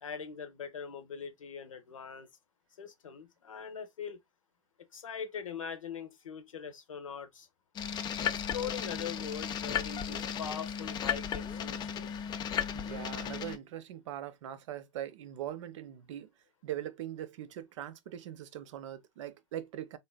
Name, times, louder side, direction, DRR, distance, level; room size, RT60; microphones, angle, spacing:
voice 1, 0.0-2.3 2.8-4.2 4.9-7.5 8.2-12.1, left 7 dB, 85° left, 0.7 m, -42 dB
sound 1, 7.8-13.6, left 8 dB, 25° left, 0.4 m, -35 dB
voice 2, 12.7-16.3 16.6-20.0, right 11 dB, 70° right, 0.5 m, -41 dB
3.2 x 2.5 x 2.2 m
hypercardioid pair, 95°, 16 cm